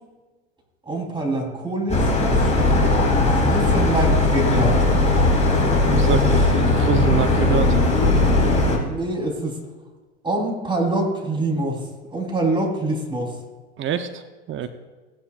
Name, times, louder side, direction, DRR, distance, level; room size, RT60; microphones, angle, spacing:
voice 1, 0.9-2.5 3.3-4.8 8.8-9.5 10.2-11.8 12.1-13.3, right 2 dB, 15° right, 0 dB, 3.8 m, -25 dB
sound 1, 1.9-8.8, left 2 dB, 20° left, 3.7 m, -18 dB
voice 2, 5.8-7.8 13.8-14.2 14.5-14.7, right 7 dB, 35° right, 9 dB, 0.9 m, -25 dB
17.5 x 10.5 x 2.5 m, 1.3 s
hypercardioid pair, 80°, 36 cm